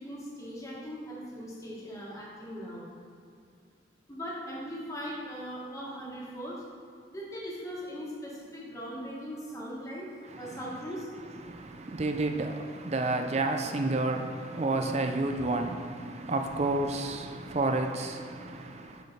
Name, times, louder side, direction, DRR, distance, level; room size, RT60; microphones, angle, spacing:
voice 1, 0.0-2.8 4.1-6.6 7.1-11.1, equal, 15° left, -5 dB, 1.5 m, -39 dB
voice 2, 10.3-10.6 11.4-19.0, right 2 dB, 35° right, 5 dB, 0.5 m, -30 dB
8.0 x 5.1 x 4.2 m, 2.3 s
head